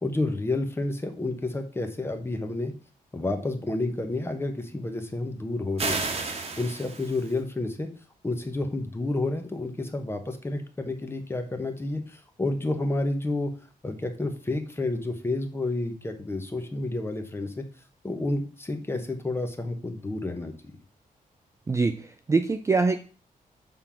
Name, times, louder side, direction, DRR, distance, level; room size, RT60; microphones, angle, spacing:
voice 1, 0.0-2.7 3.1-7.9 8.2-13.5 13.8-17.6 18.0-20.5, left 2 dB, 15° left, 6 dB, 0.9 m, -30 dB
sound 1, 5.8-7.4, right 4 dB, 40° right, 1.1 m, -31 dB
voice 2, 21.7-23.0, right 4 dB, 20° right, 8 dB, 0.3 m, -24 dB
6.7 x 3.7 x 5.6 m, 0.37 s
wide cardioid pair, 175°, 15 cm